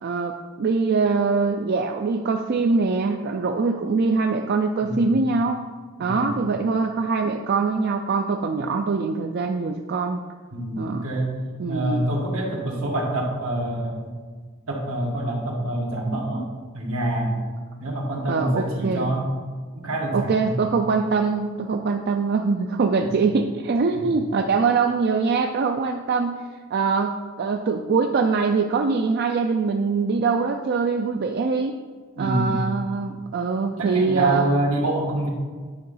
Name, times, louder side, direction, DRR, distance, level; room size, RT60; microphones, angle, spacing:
voice 1, 0.0-5.7 6.0-10.2 10.8-11.0 11.6-12.0 18.3-19.1 20.1-26.4 26.7-31.8 32.2-34.5, right 4 dB, 50° right, 4 dB, 0.4 m, -23 dB
voice 2, 4.8-5.3 6.0-6.4 10.5-11.3 11.7-14.1 14.7-16.5 16.7-17.4 17.8-19.2 19.7-20.6 23.0-23.1 24.0-24.2 32.1-32.6 33.8-35.3, right 1 dB, 90° right, -1 dB, 1.7 m, -26 dB
9.4 x 3.8 x 5.5 m, 1.5 s
head